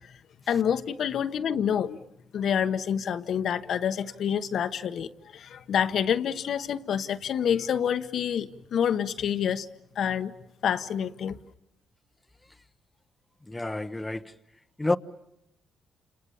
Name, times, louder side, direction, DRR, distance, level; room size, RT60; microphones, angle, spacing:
voice 1, 0.5-2.0 2.3-9.7 10.0-10.3 10.6-11.4, left 8 dB, 65° left, 1.1 m, -27 dB
voice 2, 13.5-14.3 14.8-15.0, left 2 dB, 10° left, 1.0 m, -28 dB
29.5 x 28.0 x 7.2 m
cardioid pair, 90°, 0 cm